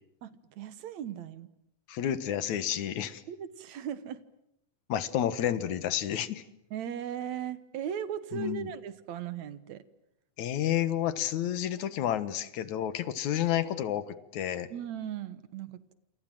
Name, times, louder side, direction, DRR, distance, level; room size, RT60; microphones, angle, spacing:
voice 1, 0.2-1.5 3.3-4.2 6.7-9.8 14.7-15.9, right 9 dB, 70° right, 14 dB, 2.5 m, -38 dB
voice 2, 1.9-3.2 4.9-6.4 8.3-8.7 10.4-14.7, left 11 dB, 75° left, 14 dB, 2.6 m, -30 dB
27.5 x 27.5 x 7.7 m, 0.81 s
omnidirectional pair, 3.4 m